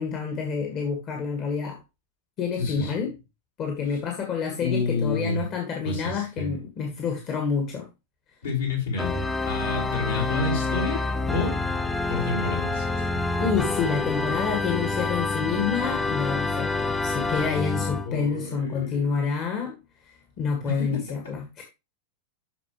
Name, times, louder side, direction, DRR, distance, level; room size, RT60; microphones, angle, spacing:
voice 1, 0.0-1.8 2.4-3.1 3.6-7.9 13.4-19.7 20.1-21.6, left 6 dB, 35° left, 3 dB, 2.1 m, -28 dB
voice 2, 2.6-2.9 4.6-5.4 5.8-6.5 8.4-11.0 11.3-11.6 12.1-13.1 18.0-19.1 20.6-20.9, left 3 dB, 65° left, -2 dB, 4.6 m, -29 dB
Organ, 9.0-18.1, left 3 dB, 10° left, 0.9 m, -27 dB
12.5 x 4.9 x 3.3 m, 0.26 s
figure-of-eight pair, 90°, 0 cm